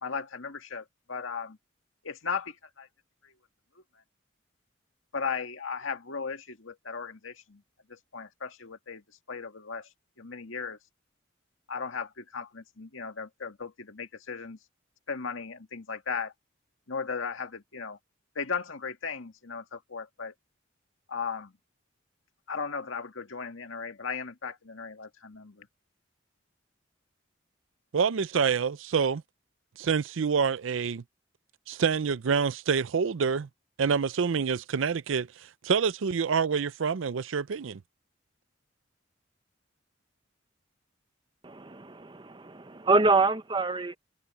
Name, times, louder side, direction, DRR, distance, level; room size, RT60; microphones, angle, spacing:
voice 1, 0.0-1.6 2.0-2.9 3.2-3.3 5.1-7.6 7.9-9.0 9.3-9.9 10.2-10.8 11.7-14.6 15.1-16.3 16.9-18.0 18.4-20.3 21.1-21.5 22.5-25.7, left 5 dB, 90° left, 2.0 m, -36 dB
voice 2, 27.9-29.2 29.8-31.0 31.7-33.5 33.8-37.8, right 6 dB, 80° right, 0.5 m, -27 dB
voice 3, 41.4-44.0, right 3 dB, 25° right, 0.8 m, -26 dB
head